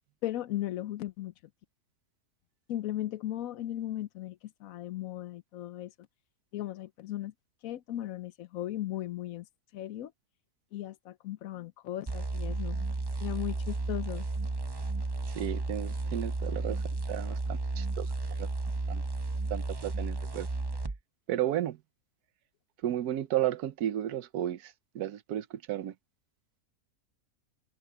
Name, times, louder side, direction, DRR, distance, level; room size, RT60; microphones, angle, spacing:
voice 1, 0.2-1.3 2.7-5.9 6.5-7.3 7.6-9.5 9.7-10.1 10.7-12.9 13.2-14.3, left 13 dB, 70° left, 1.0 m, -37 dB
sound 1, 12.1-21.0, right 3 dB, 25° right, 0.5 m, -33 dB
voice 2, 15.3-18.1 18.4-18.5 18.9-19.0 19.5-20.5 21.3-21.8 22.8-25.9, right 12 dB, 90° right, 1.3 m, -33 dB
omnidirectional pair, 1.6 m